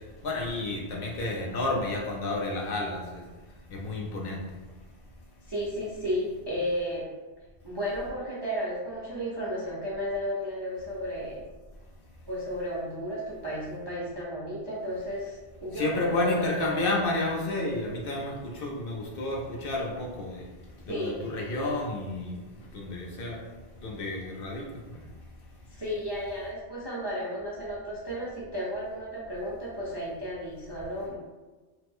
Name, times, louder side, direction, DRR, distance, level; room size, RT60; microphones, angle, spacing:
voice 1, 0.2-3.2 3.7-4.4 15.8-20.4 20.9-22.4 22.7-23.4 23.8-24.6, left 2 dB, 60° left, -1 dB, 0.7 m, -30 dB
voice 2, 5.5-7.1 7.6-11.4 12.3-16.9 20.9-21.3 25.7-31.2, equal, 40° right, -7 dB, 0.3 m, -33 dB
3.2 x 2.0 x 3.4 m, 1.2 s
omnidirectional pair, 1.2 m